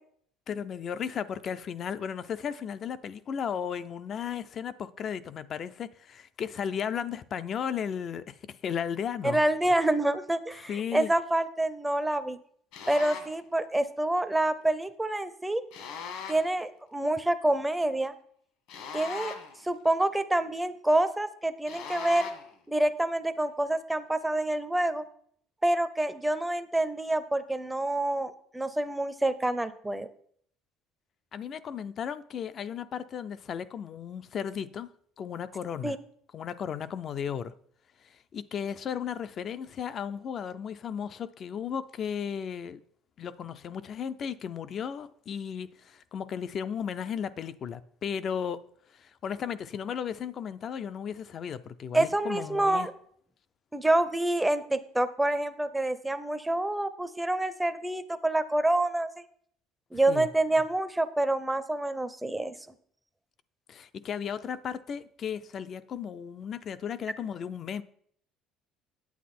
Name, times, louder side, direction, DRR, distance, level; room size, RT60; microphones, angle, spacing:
voice 1, 0.5-9.4 10.5-11.1 31.3-34.9 35.2-35.9 36.3-37.5 38.0-42.8 43.2-48.6 48.9-52.9 60.1-60.3 63.7-67.8, left 8 dB, 35° left, 0.5 m, -35 dB
voice 2, 9.2-12.4 12.9-15.6 16.3-18.1 18.9-19.3 19.6-22.3 22.7-25.0 25.6-30.1 35.8-36.0 51.9-52.9 53.7-59.1 59.9-62.5, right 1 dB, 5° right, 0.6 m, -27 dB
sound 1, 12.7-13.4 15.7-16.6 18.7-19.7 21.7-22.5, left 7 dB, 70° left, 1.6 m, -40 dB
9.3 x 8.4 x 4.3 m
cardioid pair, 140°, 0 cm